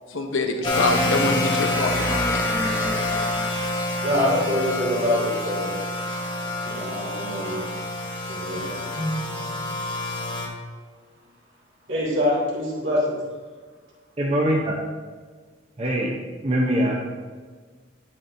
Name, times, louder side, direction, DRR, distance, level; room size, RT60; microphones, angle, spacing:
voice 1, 0.1-2.4 8.5-8.7, left 2 dB, 80° left, 4 dB, 1.0 m, -26 dB
sound 1, 0.6-10.5, left 2 dB, 25° left, 0.9 m, -27 dB
sound 2, 0.7-4.0 6.7-6.8, equal, ahead, 0.6 m, -31 dB
voice 2, 4.0-5.7 6.6-7.6 8.3-9.8 11.9-13.2, left 1 dB, 75° right, -7 dB, 2.3 m, -25 dB
voice 3, 14.2-14.7 15.8-17.0, right 1 dB, 30° right, -2 dB, 0.8 m, -23 dB
9.2 x 7.7 x 2.7 m, 1.5 s
head